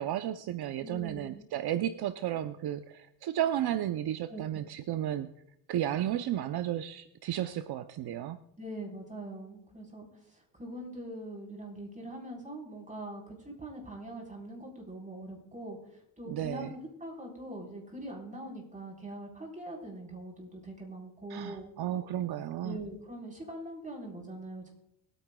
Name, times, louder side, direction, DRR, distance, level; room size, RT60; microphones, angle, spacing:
voice 1, 0.0-5.3 5.7-8.4 16.3-16.7 21.3-22.8, right 11 dB, 65° right, 10 dB, 0.7 m, -33 dB
voice 2, 0.8-1.4 4.3-4.6 8.6-15.8 16.2-21.7 22.6-24.7, right 1 dB, 20° right, -1 dB, 4.2 m, -43 dB
23.5 x 9.3 x 2.3 m, 0.78 s
cardioid pair, 85°, 41 cm